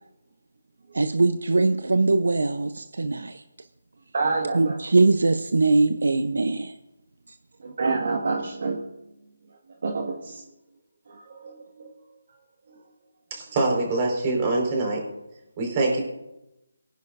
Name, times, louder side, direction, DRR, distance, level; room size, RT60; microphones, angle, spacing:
voice 1, 0.9-3.4 4.5-6.7, right 3 dB, 75° right, 9 dB, 0.8 m, -21 dB
voice 2, 4.1-4.8 7.6-8.9 9.8-10.4 11.1-11.9 12.7-12.8, right 3 dB, 55° right, 1 dB, 1.7 m, -28 dB
voice 3, 13.3-15.0 15.6-16.0, right 2 dB, 30° right, 0 dB, 4.8 m, -24 dB
23.5 x 10.5 x 2.6 m, 0.95 s
figure-of-eight pair, 160°, 0 cm